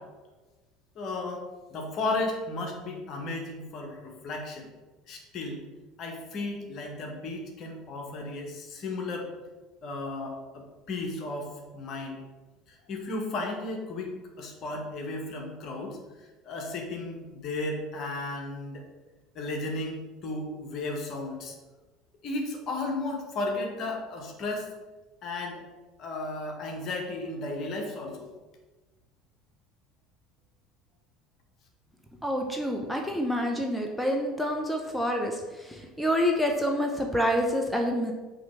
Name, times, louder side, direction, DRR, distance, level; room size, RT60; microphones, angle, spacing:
voice 1, 1.0-1.4 1.7-4.7 5.1-5.6 6.0-9.3 9.8-12.2 12.9-14.1 14.4-16.0 16.4-18.8 19.3-21.5 22.2-24.7 25.2-25.6 26.0-28.3, left 2 dB, 45° left, 1 dB, 1.3 m, -34 dB
voice 2, 32.2-38.1, equal, 5° left, 2 dB, 0.8 m, -27 dB
5.8 x 3.1 x 5.5 m, 1.2 s
figure-of-eight pair, 65°, 0 cm